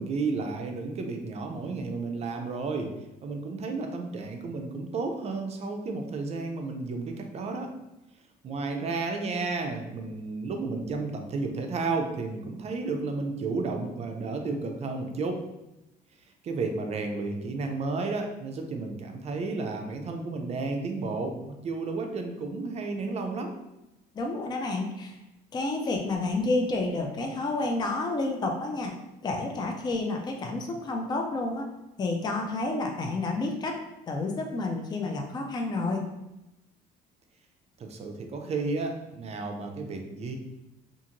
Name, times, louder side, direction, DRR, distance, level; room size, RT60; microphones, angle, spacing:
voice 1, 0.0-2.9 3.2-7.7 8.4-15.4 16.4-23.6 37.8-40.4, right 3 dB, 40° right, 4 dB, 0.5 m, -32 dB
voice 2, 24.2-25.2 25.5-28.9 29.2-31.7 32.0-33.7 34.1-36.0, left 2 dB, 25° left, 2 dB, 0.4 m, -30 dB
2.5 x 2.5 x 2.9 m, 0.95 s
cardioid pair, 110°, 17 cm